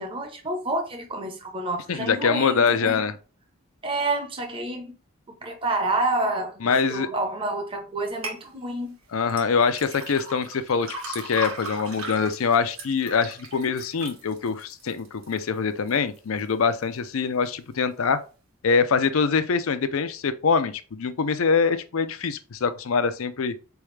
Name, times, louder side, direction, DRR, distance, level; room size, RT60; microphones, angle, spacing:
voice 1, 0.0-3.0 3.8-4.9 5.4-9.0, right 2 dB, 25° right, 0.8 m, -29 dB
voice 2, 1.9-3.1 6.6-7.1 9.1-18.2 18.6-23.5, left 5 dB, 80° left, 0.5 m, -24 dB
sound 1, 8.2-8.4 9.3-15.4 15.9-16.4 16.9-17.0, right 2 dB, 80° right, 1.5 m, -37 dB
4.3 x 3.5 x 3.2 m
head